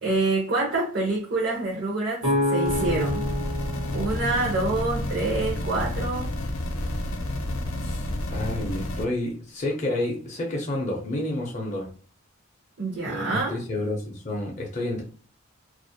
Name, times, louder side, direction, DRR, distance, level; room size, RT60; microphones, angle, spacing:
voice 1, 0.0-3.2 3.9-6.3 12.8-13.6, right 2 dB, 55° right, 0.6 m, -26 dB
sound 1, 2.2-6.0, left 1 dB, 85° right, 1.1 m, -29 dB
sound 2, 2.6-9.1, left 1 dB, 90° left, 0.5 m, -30 dB
voice 2, 7.8-11.9 13.1-15.0, left 1 dB, 35° left, 0.5 m, -30 dB
2.4 x 2.0 x 2.6 m
head